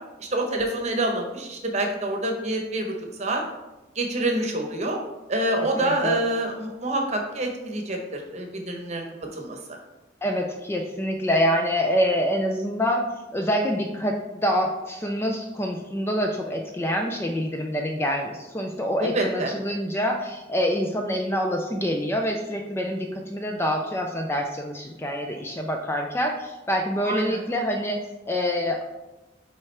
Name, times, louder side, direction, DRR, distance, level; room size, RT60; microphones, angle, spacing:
voice 1, 0.2-3.4 3.9-5.0 5.3-9.0 9.3-9.8 19.0-19.5 27.0-27.4, right 1 dB, 35° right, 2 dB, 0.9 m, -27 dB
voice 2, 5.8-6.2 10.2-28.0 28.3-28.8, equal, 15° left, 3 dB, 0.4 m, -26 dB
8.6 x 3.6 x 3.3 m, 1.1 s
head